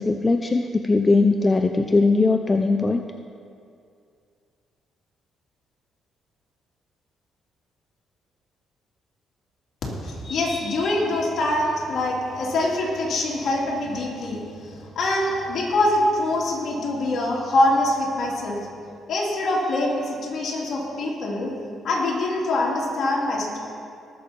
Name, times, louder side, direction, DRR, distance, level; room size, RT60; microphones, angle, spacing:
voice 1, 0.0-3.0, left 3 dB, 25° left, 5 dB, 0.5 m, -20 dB
voice 2, 9.9-18.6 19.1-21.5 21.8-23.6, left 1 dB, 60° left, -4 dB, 3.1 m, -24 dB
19.5 x 7.0 x 4.5 m, 2.4 s
cardioid pair, 90°, 0 cm